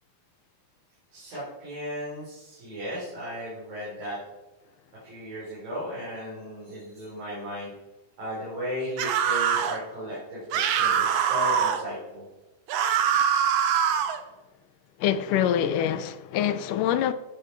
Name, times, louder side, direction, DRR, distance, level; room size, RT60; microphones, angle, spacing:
voice 1, 1.1-4.2 5.0-7.7 8.2-12.2, equal, 90° right, 6.4 m, -35 dB
sound 1, 9.0-9.8 10.5-11.8 12.7-14.2, right 8 dB, 70° right, 1.6 m, -23 dB
voice 2, 15.0-17.1, left 10 dB, 75° left, 2.2 m, -25 dB
16.0 x 9.3 x 4.6 m
omnidirectional pair, 4.0 m